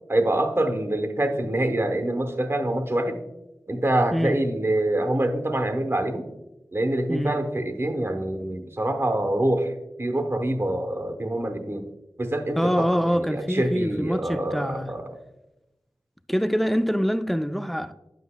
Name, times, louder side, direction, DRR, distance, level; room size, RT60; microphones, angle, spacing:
voice 1, 0.1-3.2 3.7-6.3 6.7-9.7 10.0-11.9 12.2-15.1, right 1 dB, 35° right, 0.8 m, -25 dB
voice 2, 12.6-14.9 16.3-17.9, equal, ahead, 0.4 m, -25 dB
9.1 x 7.6 x 2.2 m
wide cardioid pair, 55°, 8 cm